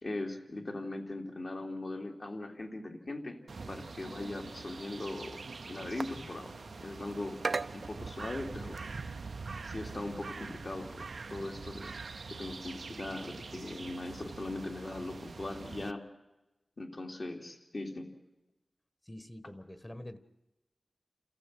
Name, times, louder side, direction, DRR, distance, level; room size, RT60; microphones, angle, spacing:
voice 1, 0.0-3.4 3.7-5.4 5.7-7.4 7.7-8.8 9.6-12.0 12.3-16.0 16.8-18.1, left 2 dB, 55° left, 2 dB, 3.2 m, -40 dB
sound 1, 3.5-15.9, right 4 dB, 85° right, 0.7 m, -42 dB
voice 2, 19.0-20.2, left 1 dB, 20° left, 12 dB, 1.5 m, -46 dB
28.5 x 14.5 x 7.8 m, 0.99 s
wide cardioid pair, 75°, 0 cm